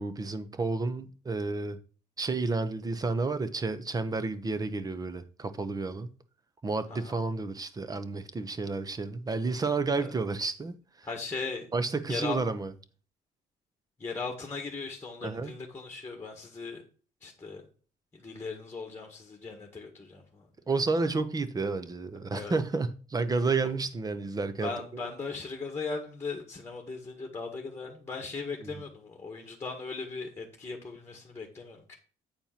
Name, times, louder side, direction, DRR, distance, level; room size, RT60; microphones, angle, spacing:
voice 1, 0.0-1.8 2.2-6.1 6.6-11.1 11.7-12.7 15.2-15.5 20.7-25.0 28.6-28.7, right 3 dB, 20° right, 0.9 m, -31 dB
voice 2, 11.0-11.7 12.1-12.4 14.0-16.8 17.2-17.7 18.1-20.5 22.3-22.6 24.6-31.9, left 4 dB, 15° left, 1.7 m, -38 dB
8.8 x 4.4 x 5.8 m
cardioid pair, 110°, 17 cm